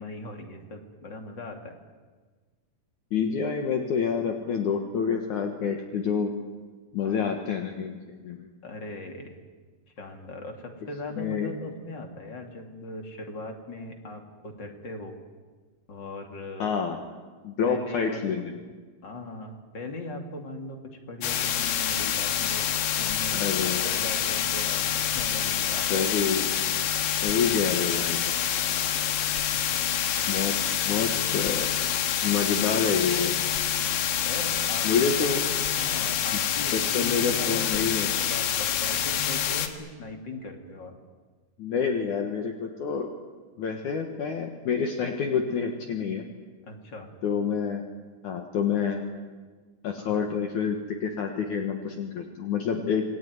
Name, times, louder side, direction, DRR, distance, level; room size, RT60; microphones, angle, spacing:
voice 1, 0.0-1.7 7.0-7.3 8.6-9.4 10.0-15.2 15.9-16.7 17.7-18.4 19.0-22.6 23.0-23.5 23.8-26.1 29.5-29.6 34.2-34.9 35.8-41.0 46.6-47.1 50.0-50.3, left 2 dB, 30° left, 4 dB, 2.8 m, -39 dB
voice 2, 3.1-6.3 6.9-8.0 8.2-8.5 11.2-11.5 16.6-17.0 17.4-18.6 23.3-23.8 25.9-26.5 27.2-28.3 30.3-30.5 30.9-31.7 32.2-33.4 34.8-35.4 36.7-38.1 41.6-43.1 43.6-46.3 47.2-47.8 48.2-49.0 49.8-53.1, left 6 dB, 60° left, 4 dB, 2.7 m, -27 dB
sound 1, 21.2-39.7, left 9 dB, 90° left, 3.5 m, -27 dB
27.0 x 20.5 x 9.5 m, 1.4 s
omnidirectional pair, 4.3 m